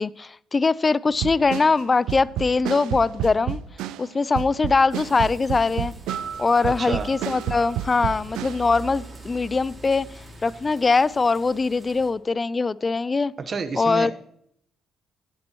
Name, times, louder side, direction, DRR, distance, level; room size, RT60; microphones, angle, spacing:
voice 1, 0.0-3.6 4.0-5.9 6.4-10.1 10.4-13.3 13.8-14.1, left 4 dB, 25° left, 0.3 m, -22 dB
sound 1, 1.1-8.6, right 11 dB, 90° right, 0.4 m, -30 dB
sound 2, 4.9-12.1, right 2 dB, 20° right, 4.5 m, -44 dB
sound 3, 5.9-10.1 10.4-10.5, right 7 dB, 60° right, 1.7 m, -41 dB
voice 2, 6.6-7.1 13.5-14.1, right 4 dB, 45° right, 1.1 m, -29 dB
14.0 x 10.5 x 3.0 m
cardioid pair, 95°, 0 cm